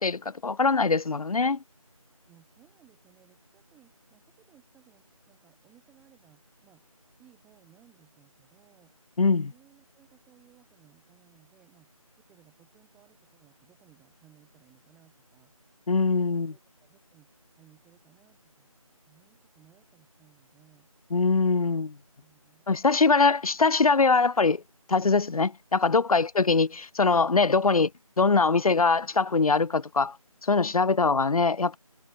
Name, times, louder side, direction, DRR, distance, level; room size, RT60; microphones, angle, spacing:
voice 1, 0.0-1.6 9.2-9.5 15.9-16.5 21.1-21.9 22.7-24.6 24.9-27.9 28.2-30.2 30.4-31.8, left 4 dB, 75° left, 0.5 m, -22 dB
voice 2, 2.3-6.8 7.2-8.9 9.5-11.9 12.3-15.5 16.2-18.7 19.1-20.9 22.2-22.7, right 12 dB, 5° right, 6.4 m, -61 dB
figure-of-eight pair, 170°, 19 cm